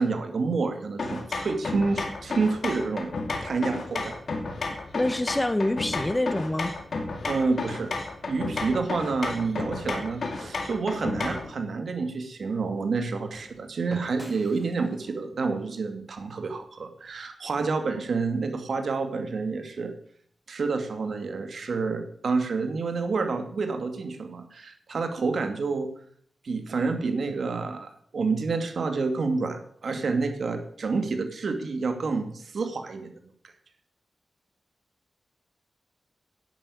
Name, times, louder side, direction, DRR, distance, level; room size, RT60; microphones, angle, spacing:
voice 1, 0.0-3.1 3.4-4.2 7.3-7.9 8.3-19.9 20.5-25.9 26.4-33.5, right 4 dB, 65° right, 7 dB, 2.3 m, -28 dB
sound 1, 1.0-11.5, left 3 dB, 55° left, 2.5 m, -32 dB
voice 2, 4.9-6.7, left 1 dB, 15° left, 10 dB, 1.1 m, -26 dB
sound 2, 11.7-17.2, right 1 dB, 10° right, 2.6 m, -50 dB
11.5 x 9.5 x 8.6 m, 0.64 s
wide cardioid pair, 135°, 0 cm